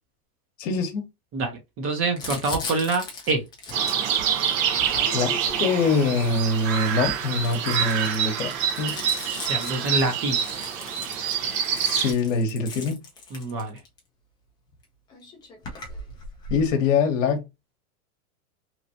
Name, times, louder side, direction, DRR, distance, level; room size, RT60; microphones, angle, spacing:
voice 1, 0.6-1.0 5.1-9.0 11.8-13.0 16.5-17.4, left 4 dB, 55° left, 1.0 m, -24 dB
voice 2, 1.3-3.4 9.5-10.4 13.3-13.8, right 3 dB, 30° right, 0.8 m, -26 dB
Crumpling crinkling, 2.2-6.2 6.9-14.0 14.8-14.9 15.1-16.7, left 3 dB, 10° left, 0.3 m, -38 dB
sound 1, 3.7-12.1, right 8 dB, 55° right, 0.9 m, -26 dB
2.9 x 2.5 x 2.6 m
hypercardioid pair, 115°, 46 cm